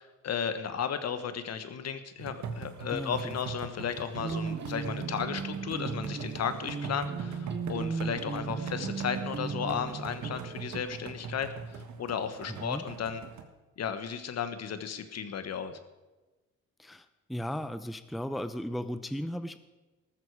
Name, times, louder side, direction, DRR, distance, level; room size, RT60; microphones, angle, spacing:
voice 1, 0.0-13.2 13.8-15.8, left 7 dB, 60° left, 10 dB, 1.4 m, -34 dB
sound 1, 2.2-13.4, right 5 dB, 65° right, 1.7 m, -42 dB
voice 2, 2.9-3.3 12.5-12.8 16.8-19.6, equal, ahead, 11 dB, 0.6 m, -36 dB
sound 2, 4.1-10.8, right 5 dB, 35° right, 1.3 m, -36 dB
14.0 x 13.5 x 4.8 m, 1.2 s
cardioid pair, 90°, 30 cm